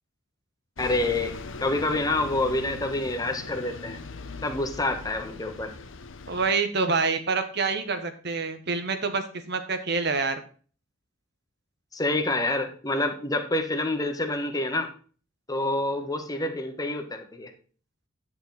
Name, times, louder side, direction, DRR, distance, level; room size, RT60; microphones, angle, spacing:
Bus, 0.8-6.5, left 3 dB, 80° left, 1.0 m, -40 dB
voice 1, 0.8-4.0 4.4-5.7 11.9-14.9 15.5-17.5, left 2 dB, 20° left, 5 dB, 1.4 m, -27 dB
voice 2, 6.3-10.4, right 4 dB, 60° right, 8 dB, 1.4 m, -27 dB
10.5 x 6.6 x 4.2 m, 0.40 s
head